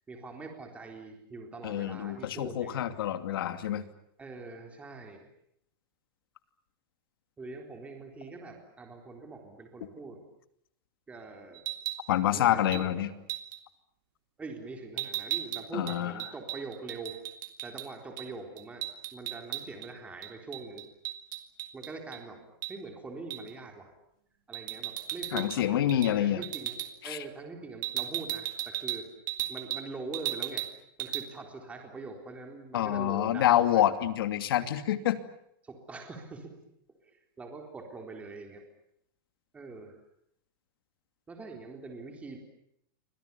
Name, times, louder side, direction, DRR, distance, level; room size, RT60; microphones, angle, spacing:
voice 1, 0.1-2.8 4.2-5.3 7.4-10.2 11.1-11.6 12.3-13.1 14.4-17.1 17.6-20.9 21.7-23.9 24.5-29.1 29.5-30.7 31.0-33.8 35.6-36.5 37.4-38.6 39.5-39.9 41.3-42.4, right 3 dB, 10° right, 3 dB, 4.0 m, -43 dB
voice 2, 1.6-3.8 12.1-13.1 15.7-16.1 25.3-26.4 27.0-27.2 32.7-35.2, left 12 dB, 80° left, 10 dB, 2.7 m, -27 dB
sound 1, 11.5-12.0 12.7-12.9 13.3-13.6 15.0-17.9 18.2-18.3 18.6-19.9 20.2-22.2 22.6-22.8 23.3-23.5 24.5-25.6 25.9-26.1 26.4-26.9 27.8-29.9 30.1-30.7 31.0-31.2, right 15 dB, 60° right, 3.4 m, -36 dB
29.5 x 25.0 x 7.1 m, 0.74 s
supercardioid pair, 165°, 12 cm